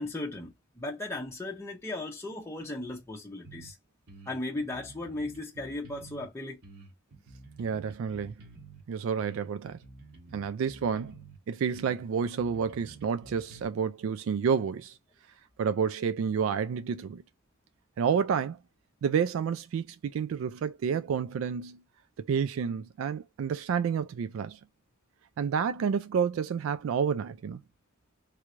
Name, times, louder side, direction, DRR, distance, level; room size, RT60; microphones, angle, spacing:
voice 1, 0.0-3.8 4.3-6.6, left 2 dB, 15° left, 0.6 m, -36 dB
sound 1, 3.4-3.7 4.1-6.3 6.6-8.8 9.2-11.4 11.7-13.7, right 3 dB, 65° right, 1.3 m, -50 dB
voice 2, 7.6-8.3 8.9-9.8 10.3-11.1 11.5-15.0 15.6-17.2 18.0-18.6 19.0-21.8 22.2-24.6 25.4-27.6, right 6 dB, 85° right, 0.3 m, -29 dB
3.3 x 3.1 x 2.5 m
head